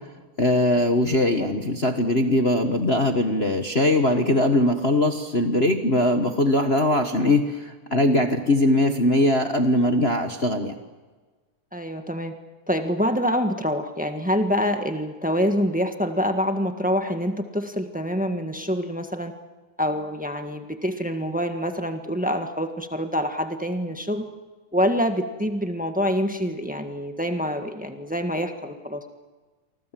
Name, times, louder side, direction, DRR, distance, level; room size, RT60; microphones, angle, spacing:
voice 1, 0.4-10.7, left 1 dB, 45° left, 5 dB, 0.8 m, -21 dB
voice 2, 11.7-12.4 12.7-19.3 19.8-24.2 24.7-29.0, equal, 10° right, 5 dB, 0.4 m, -26 dB
29.0 x 24.5 x 7.6 m, 1.3 s
omnidirectional pair, 3.5 m